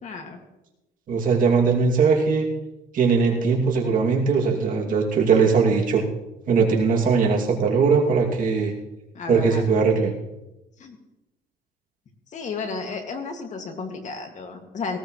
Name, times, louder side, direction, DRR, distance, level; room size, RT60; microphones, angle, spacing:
voice 1, 0.0-0.4 9.1-9.7 10.8-11.0 12.3-15.0, left 4 dB, 45° left, 4 dB, 2.3 m, -33 dB
voice 2, 1.1-2.5 2.9-6.0 6.5-8.7 9.3-10.1, right 5 dB, 55° right, -1 dB, 2.7 m, -20 dB
18.5 x 17.5 x 3.2 m, 0.96 s
cardioid pair, 110°, 17 cm